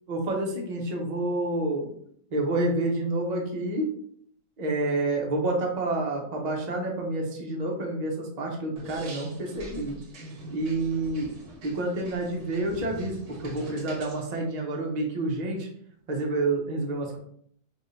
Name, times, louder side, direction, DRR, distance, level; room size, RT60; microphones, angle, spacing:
voice 1, 0.1-1.9 2.3-3.9 4.6-10.0 10.5-11.3 11.6-15.7 16.1-17.2, right 2 dB, 35° right, 0 dB, 0.8 m, -28 dB
sound 1, 8.8-14.2, right 1 dB, 75° right, 1.4 m, -44 dB
3.5 x 2.6 x 4.0 m, 0.63 s
omnidirectional pair, 1.6 m